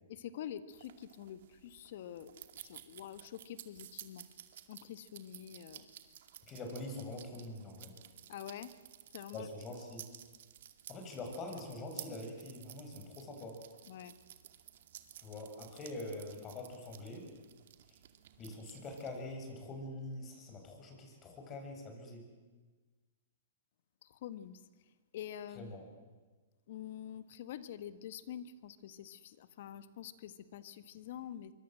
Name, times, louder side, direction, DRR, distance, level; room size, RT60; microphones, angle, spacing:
voice 1, 0.1-4.3 4.7-5.9 8.3-8.7 9.1-9.5 13.9-14.1 24.1-24.6 25.1-25.7 26.7-31.5, left 10 dB, 60° left, 13 dB, 1.5 m, -46 dB
sound 1, 0.7-19.3, right 11 dB, 65° right, 2.3 m, -54 dB
voice 2, 6.4-7.9 9.3-10.0 10.9-13.6 15.2-17.3 18.4-22.2 25.6-25.8, left 2 dB, 25° left, 3 dB, 7.2 m, -44 dB
25.5 x 23.5 x 7.7 m, 1.3 s
hypercardioid pair, 135°, 0 cm